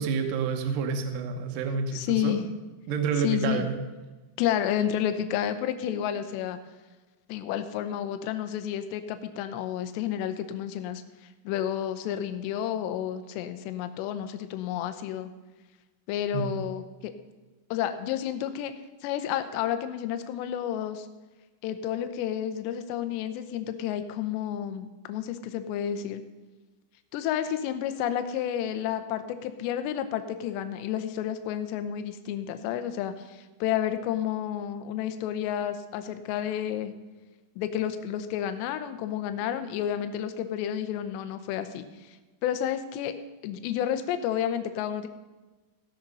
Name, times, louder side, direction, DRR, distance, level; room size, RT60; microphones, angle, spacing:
voice 1, 0.0-2.4 2.9-3.8 16.3-16.5, right 5 dB, 75° right, 5 dB, 2.0 m, -28 dB
voice 2, 1.9-2.4 3.2-3.7 4.4-6.6 7.3-11.0 11.4-15.3 16.1-17.1 17.7-18.7 19.0-21.1 21.6-26.2 27.1-36.9 37.6-42.2 42.4-43.1 43.4-45.1, left 10 dB, 80° left, 9 dB, 2.7 m, -30 dB
16.0 x 6.5 x 5.4 m, 1.2 s
omnidirectional pair, 5.5 m